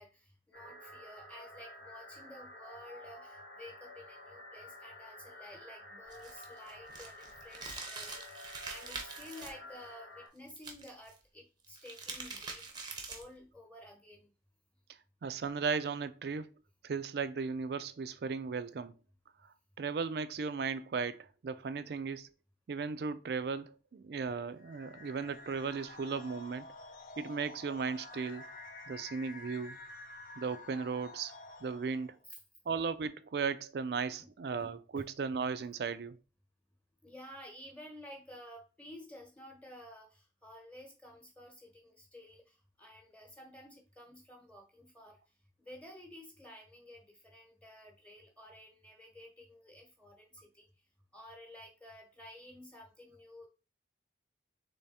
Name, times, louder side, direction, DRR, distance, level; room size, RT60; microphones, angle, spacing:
voice 1, 0.0-12.6 13.1-14.3 32.3-32.4 34.2-34.3 34.6-35.1 37.0-45.2 45.6-50.7 51.1-53.5, left 1 dB, 5° left, 1.0 m, -52 dB
sound 1, 0.5-10.3, left 1 dB, 80° left, 1.4 m, -51 dB
sound 2, 6.1-9.5 10.6-11.1 11.6-13.4, right 4 dB, 25° right, 0.7 m, -44 dB
voice 2, 15.2-16.5 16.8-18.9 19.8-22.3 22.7-26.7 27.2-28.5 28.9-29.8 30.4-31.3 31.6-32.1 32.7-36.2, right 5 dB, 55° right, 0.4 m, -36 dB
sound 3, 24.6-32.2, left 2 dB, 45° left, 0.6 m, -50 dB
3.5 x 3.3 x 4.1 m
head